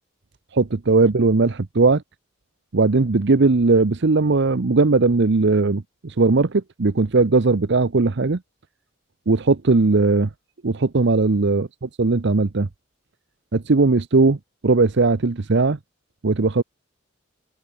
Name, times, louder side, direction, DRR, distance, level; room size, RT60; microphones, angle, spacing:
voice 1, 0.5-2.0 2.7-8.4 9.3-10.3 10.6-11.7 12.0-12.7 13.5-14.4 14.6-15.8 16.2-16.6, right 3 dB, 55° right, 0.7 m, -18 dB
open air
head